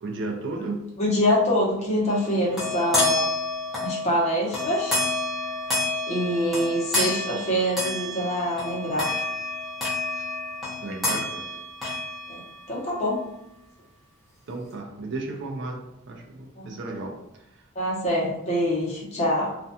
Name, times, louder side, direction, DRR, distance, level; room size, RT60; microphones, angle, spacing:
voice 1, 0.0-0.8 10.2-10.3 10.8-11.5 14.5-17.2 17.5-17.6, right 2 dB, 60° right, 1 dB, 0.4 m, -34 dB
voice 2, 1.0-3.3 3.8-5.0 6.0-9.1 12.3-12.4 12.7-13.2 16.6-16.7 17.7-19.6, equal, 35° left, -5 dB, 0.8 m, -25 dB
sound 1, 2.1-12.7, left 2 dB, ahead, 0.8 m, -29 dB
2.4 x 2.2 x 2.7 m, 0.86 s
head